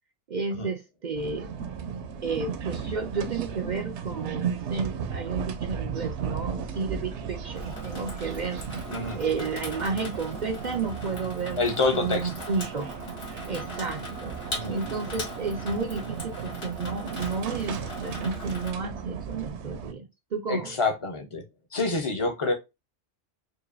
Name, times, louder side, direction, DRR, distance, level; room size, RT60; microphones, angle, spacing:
voice 1, 0.3-1.5 2.2-8.6 9.1-11.6 11.9-12.9 13.5-14.4 14.7-20.8, right 4 dB, 55° right, 0.6 m, -32 dB
sound 1, 1.2-19.9, right 7 dB, 75° right, 0.9 m, -35 dB
Water tap faucet / Sink (filling or washing), 7.6-18.7, left 1 dB, 60° left, 1.7 m, -40 dB
voice 2, 8.9-9.2 11.6-12.4 14.5-14.8 20.5-21.4 21.7-22.5, left 3 dB, 30° left, 0.7 m, -27 dB
4.8 x 2.5 x 2.5 m
omnidirectional pair, 1.2 m